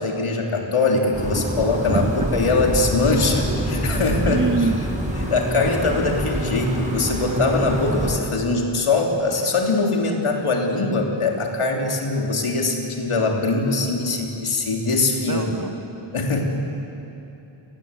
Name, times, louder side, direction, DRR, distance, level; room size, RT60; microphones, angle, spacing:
voice 1, 0.0-4.7 5.2-15.6 16.1-16.4, left 3 dB, 85° left, 1 dB, 3.3 m, -22 dB
sound 1, 1.1-8.1, right 1 dB, 15° right, 6.7 m, -26 dB
voice 2, 1.9-2.3 4.3-4.8 15.2-15.7, right 4 dB, 40° right, 4 dB, 1.7 m, -24 dB
30.0 x 18.5 x 8.3 m, 2.8 s
wide cardioid pair, 70°, 49 cm